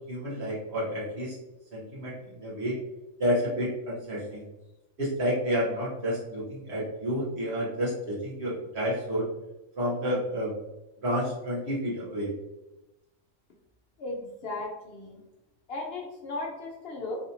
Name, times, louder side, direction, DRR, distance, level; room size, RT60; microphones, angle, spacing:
voice 1, 0.1-1.3 1.7-2.7 3.2-4.4 5.0-9.3 9.8-10.5 11.0-12.3, equal, 55° right, -7 dB, 1.2 m, -30 dB
voice 2, 14.0-15.2 15.7-17.2, left 2 dB, 60° left, 0 dB, 0.7 m, -36 dB
3.3 x 2.7 x 2.6 m, 0.95 s
omnidirectional pair, 1.4 m